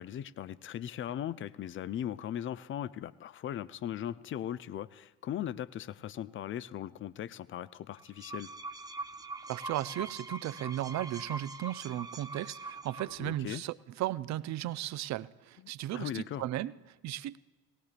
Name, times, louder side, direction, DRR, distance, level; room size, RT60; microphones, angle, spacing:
voice 1, 0.0-8.5 13.2-13.6 15.9-16.4, left 11 dB, 30° left, 18 dB, 0.4 m, -38 dB
sound 1, 8.0-13.4, right 2 dB, 10° right, 0.7 m, -43 dB
voice 2, 9.5-17.4, right 14 dB, 40° right, 18 dB, 0.5 m, -36 dB
18.5 x 16.5 x 2.5 m, 1.3 s
hypercardioid pair, 60°, 43 cm